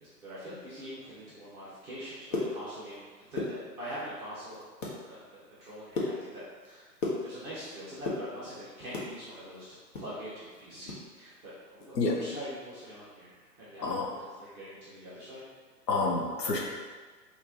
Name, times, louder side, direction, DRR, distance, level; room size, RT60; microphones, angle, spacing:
voice 1, 0.0-4.7 5.0-6.9 7.2-9.6 9.9-13.3 13.6-13.9 14.4-15.4, equal, 5° right, -15 dB, 0.6 m, -43 dB
sound 1, 2.1-3.0 3.3-4.1 4.5-5.0 5.4-7.7 7.9-9.1 9.5-11.0 11.3-11.4 11.8-12.0 12.4-12.6, left 2 dB, 50° left, 1.2 m, -35 dB
voice 2, 15.9-16.6, left 3 dB, 80° left, -1 dB, 0.9 m, -28 dB
4.4 x 2.9 x 3.9 m, 1.4 s
figure-of-eight pair, 130°, 49 cm